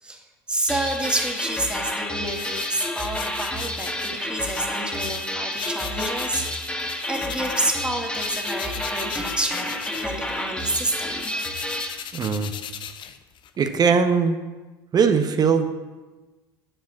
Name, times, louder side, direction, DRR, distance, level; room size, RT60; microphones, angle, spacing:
voice 1, 0.0-11.3, right 1 dB, 10° right, 1 dB, 2.4 m, -29 dB
sound 1, 0.7-12.0, left 1 dB, 10° left, 1.9 m, -30 dB
sound 2, 0.8-7.9 8.1-13.6, left 9 dB, 40° left, 0.9 m, -38 dB
voice 2, 12.1-12.5 13.6-14.4 14.9-15.7, right 5 dB, 35° right, 8 dB, 1.1 m, -20 dB
10.0 x 7.4 x 7.5 m, 1.2 s
figure-of-eight pair, 70°, 12 cm